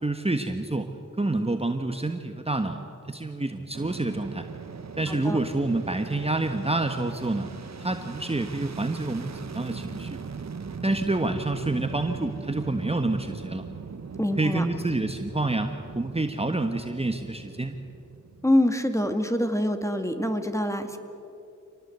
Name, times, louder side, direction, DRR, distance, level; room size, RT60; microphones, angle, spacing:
voice 1, 0.0-0.9 1.2-2.8 3.1-4.5 5.0-7.5 7.8-10.2 10.8-13.6 14.4-17.8, right 2 dB, 20° right, 6 dB, 1.4 m, -28 dB
Fixed-wing aircraft airplane, 3.7-18.9, right 5 dB, 60° right, 1.3 m, -40 dB
voice 2, 5.1-5.4 14.2-14.7 18.4-21.0, left 1 dB, 10° left, 6 dB, 2.4 m, -25 dB
27.0 x 19.0 x 8.1 m, 2.8 s
cardioid pair, 55°, 31 cm